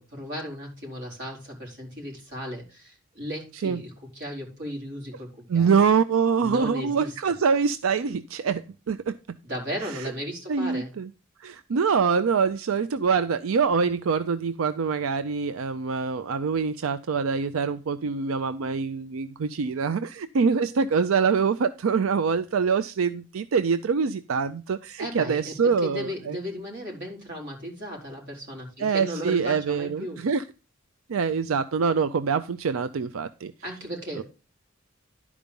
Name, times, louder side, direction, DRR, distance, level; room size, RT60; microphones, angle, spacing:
voice 1, 0.0-5.8 6.4-7.2 9.4-10.9 25.0-30.2 33.6-34.2, equal, 55° right, -1 dB, 4.6 m, -36 dB
voice 2, 5.5-9.2 10.5-11.1 11.4-26.4 28.8-30.4 31.1-33.5 34.2-34.3, right 5 dB, 90° right, 13 dB, 0.5 m, -25 dB
11.5 x 4.9 x 5.3 m, 0.32 s
head